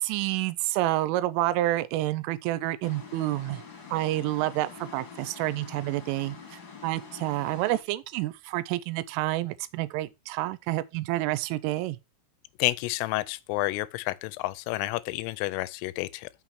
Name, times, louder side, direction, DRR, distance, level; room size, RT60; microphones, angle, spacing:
voice 1, 0.0-3.6 3.9-12.0, right 16 dB, 85° right, 3.0 m, -29 dB
sound 1, 2.8-7.8, left 5 dB, 40° left, 1.8 m, -45 dB
voice 2, 12.6-16.3, left 19 dB, 85° left, 3.1 m, -30 dB
6.5 x 6.1 x 5.7 m
omnidirectional pair, 5.8 m